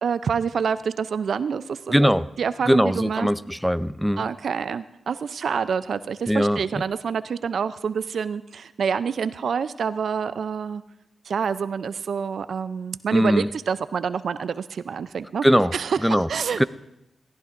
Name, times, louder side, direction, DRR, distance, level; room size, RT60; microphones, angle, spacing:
voice 1, 0.0-2.1 2.4-3.3 4.2-10.8 11.3-15.5 15.7-16.6, right 6 dB, 75° right, 14 dB, 0.4 m, -27 dB
voice 2, 1.9-2.2 2.7-4.2 6.3-6.6 13.1-13.5 15.4-15.7 16.0-16.3 16.6-16.7, equal, ahead, 15 dB, 0.5 m, -20 dB
17.5 x 14.5 x 2.5 m, 0.87 s
supercardioid pair, 45°, 0 cm